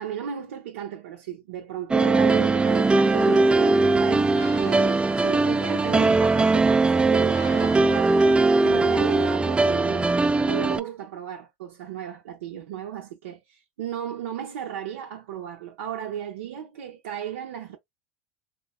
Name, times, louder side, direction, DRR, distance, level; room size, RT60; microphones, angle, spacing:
voice 1, 0.0-17.8, right 10 dB, 75° right, 0.6 m, -35 dB
sound 1, 1.9-10.8, right 3 dB, 15° right, 0.4 m, -20 dB
sound 2, 2.7-9.4, left 3 dB, 85° left, 1.4 m, -48 dB
3.1 x 2.9 x 2.3 m
hypercardioid pair, 80°, 7 cm